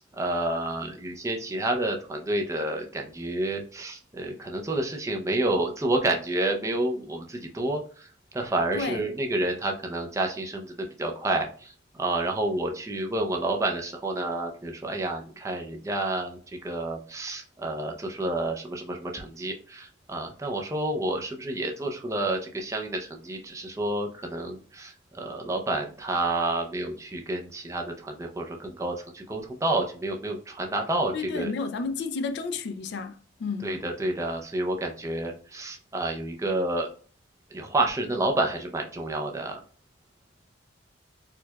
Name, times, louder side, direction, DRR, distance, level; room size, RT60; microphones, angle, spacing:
voice 1, 0.0-11.7 12.0-31.5 33.6-36.9 37.5-39.6, right 2 dB, 15° right, 0.5 m, -29 dB
voice 2, 31.1-33.7, left 4 dB, 60° left, 0.3 m, -31 dB
4.4 x 2.2 x 2.2 m
head